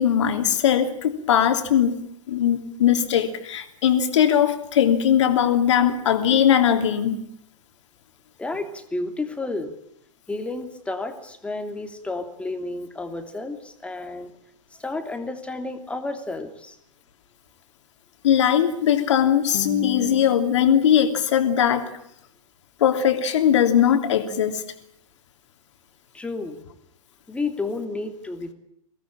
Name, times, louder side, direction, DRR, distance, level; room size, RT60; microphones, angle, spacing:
voice 1, 0.0-1.9 2.3-7.2 18.2-21.9 22.8-24.6, left 9 dB, 55° left, 7 dB, 3.2 m, -20 dB
voice 2, 8.4-9.7 10.3-14.3 14.8-16.8 26.1-26.6 27.3-28.5, left 2 dB, 5° left, 7 dB, 3.0 m, -31 dB
23.5 x 18.0 x 8.8 m, 0.76 s
figure-of-eight pair, 100°, 18 cm